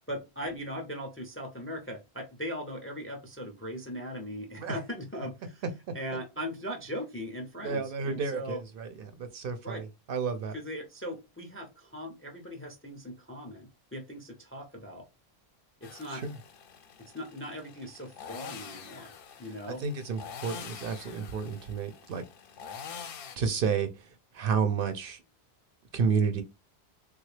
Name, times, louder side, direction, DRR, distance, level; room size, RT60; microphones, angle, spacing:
voice 1, 0.1-5.6 5.9-8.6 9.6-9.8 10.5-15.1 15.8-16.2 17.0-19.1 19.4-19.8, equal, 20° left, 0.4 m, -39 dB
voice 2, 7.6-10.6 16.1-16.4 19.8-22.2 23.3-25.2 25.9-26.4, right 5 dB, 65° right, 0.7 m, -31 dB
sound 1, 15.8-23.4, left 7 dB, 65° left, 0.7 m, -46 dB
3.3 x 2.3 x 3.2 m
omnidirectional pair, 1.1 m